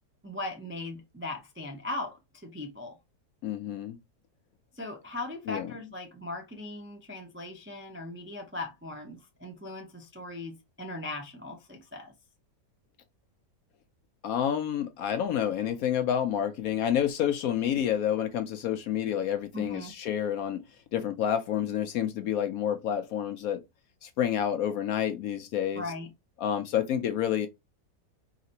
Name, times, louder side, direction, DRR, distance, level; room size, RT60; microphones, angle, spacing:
voice 1, 0.2-3.0 4.7-12.1 19.5-19.9 25.7-26.1, left 2 dB, 20° right, 0.3 m, -39 dB
voice 2, 3.4-4.0 5.5-5.7 14.2-20.6 20.9-23.6 24.0-25.8 26.4-27.5, left 9 dB, 70° left, 0.9 m, -29 dB
4.8 x 3.2 x 2.8 m
omnidirectional pair, 1.8 m